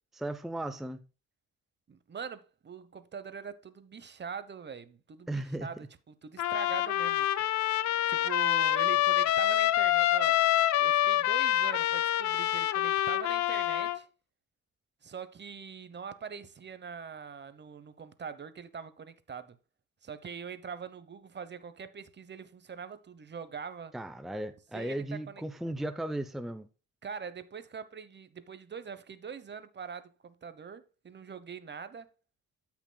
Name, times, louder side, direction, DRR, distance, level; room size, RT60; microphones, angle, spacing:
voice 1, 0.1-1.0 5.3-5.7 23.9-26.7, right 1 dB, ahead, 0.6 m, -36 dB
voice 2, 1.9-5.7 6.1-7.3 8.1-10.4 10.8-14.1 15.0-19.6 20.0-23.9 24.7-25.4 27.0-32.1, right 6 dB, 35° right, 1.0 m, -43 dB
Trumpet, 6.4-14.0, left 13 dB, 70° left, 0.6 m, -26 dB
13.0 x 6.0 x 2.3 m
cardioid pair, 90°, 30 cm